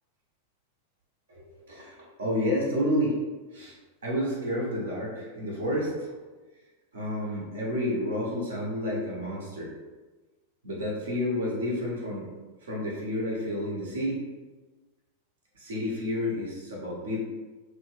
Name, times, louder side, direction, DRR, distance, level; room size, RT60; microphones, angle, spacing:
voice 1, 1.3-3.2 3.5-3.7 4.0-6.1 6.9-9.7 10.6-12.3 12.6-14.2 15.5-17.2, left 1 dB, 65° right, -4 dB, 0.9 m, -30 dB
2.9 x 2.2 x 3.2 m, 1.2 s
figure-of-eight pair, 90°, 0 cm